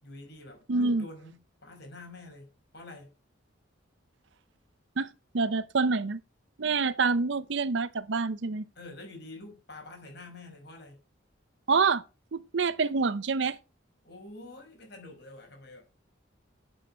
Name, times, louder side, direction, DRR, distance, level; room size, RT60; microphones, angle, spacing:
voice 1, 0.0-3.2 8.8-11.0 14.0-15.9, left 2 dB, 55° left, 5.4 m, -47 dB
voice 2, 0.7-1.0 5.0-5.1 5.3-6.2 6.6-8.6 11.7-12.0 12.3-13.6, right 4 dB, 65° right, 0.6 m, -26 dB
9.2 x 8.7 x 6.4 m
head